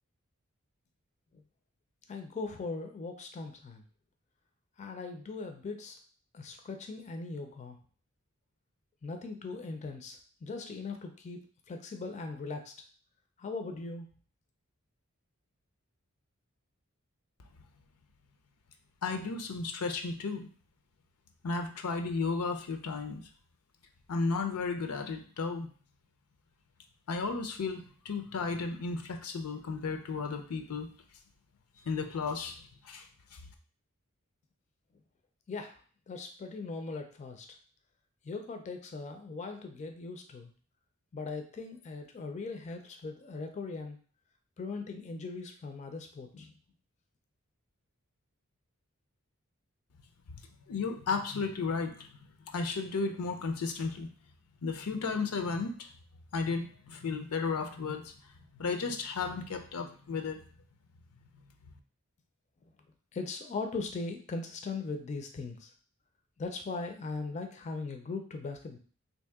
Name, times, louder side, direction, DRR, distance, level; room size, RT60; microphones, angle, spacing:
voice 1, 2.1-3.8 4.8-6.0 6.3-7.8 9.0-11.4 11.7-12.9 13.4-14.1 35.5-35.8 36.1-37.5 38.2-40.5 41.1-44.0 44.6-46.5 63.1-65.7 66.4-68.8, left 3 dB, 30° left, 5 dB, 0.3 m, -39 dB
voice 2, 19.0-20.5 21.4-23.2 24.1-25.7 27.1-30.9 31.8-33.4 50.7-52.1 52.5-54.1 54.6-55.9 56.3-58.1 58.5-60.4, left 4 dB, 85° left, 6 dB, 0.5 m, -34 dB
3.0 x 2.7 x 3.4 m, 0.43 s
head